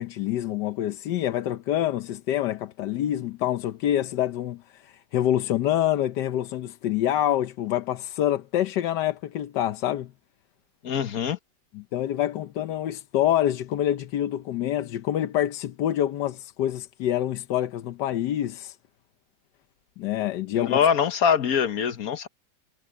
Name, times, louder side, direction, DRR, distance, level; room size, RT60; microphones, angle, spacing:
voice 1, 0.0-10.1 11.7-18.8 20.0-20.9, left 12 dB, 80° left, 1.4 m, -26 dB
voice 2, 10.8-11.4 20.5-22.3, left 7 dB, 60° left, 1.4 m, -23 dB
omnidirectional pair, 1.8 m